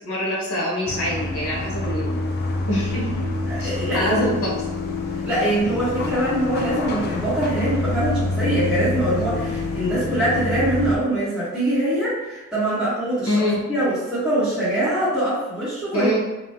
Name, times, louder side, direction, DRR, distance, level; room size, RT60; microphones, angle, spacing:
voice 1, 0.0-2.2 2.7-3.1 3.5-4.5 13.2-13.6 15.9-16.2, equal, 85° left, -5 dB, 1.0 m, -24 dB
sound 1, 0.9-11.0, left 2 dB, 50° left, 0.4 m, -27 dB
voice 2, 3.5-4.2 5.2-13.4 13.7-16.1, right 1 dB, ahead, -15 dB, 1.0 m, -23 dB
3.4 x 2.2 x 2.7 m, 1.1 s
head